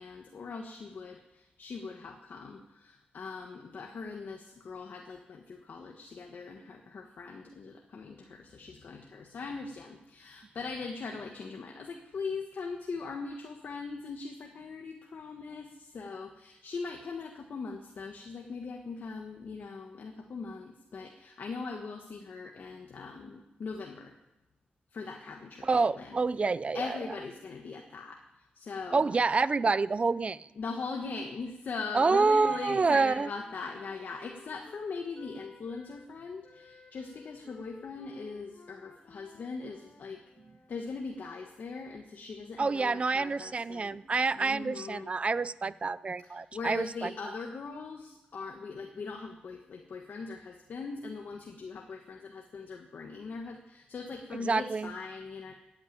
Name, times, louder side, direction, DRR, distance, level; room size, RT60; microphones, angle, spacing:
voice 1, 0.0-24.1 24.9-26.2 26.7-28.2 28.5-29.1 30.6-40.2 40.7-44.0 44.3-45.1 46.2-55.5, left 4 dB, 65° left, 3 dB, 1.4 m, -41 dB
voice 2, 25.6-26.9 28.9-30.5 31.9-33.3 42.6-47.1 54.5-54.9, right 4 dB, 35° right, 17 dB, 0.5 m, -27 dB
Wind instrument woodwind instrument, 32.7-36.1 36.4-40.9, left 4 dB, 45° left, 1.3 m, -55 dB
14.0 x 9.0 x 9.0 m, 0.99 s
wide cardioid pair, 115°, 3 cm